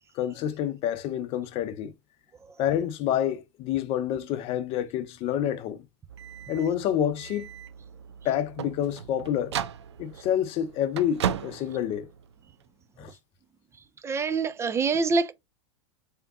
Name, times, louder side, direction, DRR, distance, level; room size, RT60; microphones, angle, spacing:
voice 1, 0.1-1.9 2.6-5.8 6.5-7.5 8.2-9.6 10.0-12.1 13.0-13.1, left 10 dB, 45° left, 0.7 m, -28 dB
sound 1, 6.1-12.6, right 9 dB, 90° right, 0.4 m, -36 dB
voice 2, 14.0-15.3, right 4 dB, 20° right, 0.6 m, -25 dB
3.5 x 2.9 x 3.6 m
hypercardioid pair, 105°, 14 cm